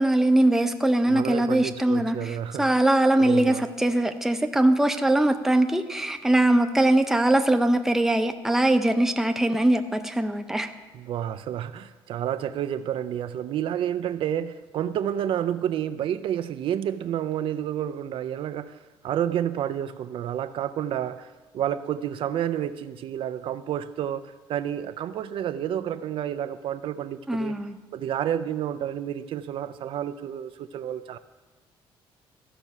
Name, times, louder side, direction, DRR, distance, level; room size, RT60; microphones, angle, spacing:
voice 1, 0.0-2.2 2.6-10.7 27.3-27.7, right 1 dB, 5° right, 6 dB, 0.6 m, -21 dB
voice 2, 1.1-2.8 3.2-3.6 10.9-27.5 27.9-31.2, right 10 dB, 60° right, 11 dB, 0.4 m, -30 dB
14.0 x 6.0 x 5.4 m, 1.3 s
cardioid pair, 110°, 10 cm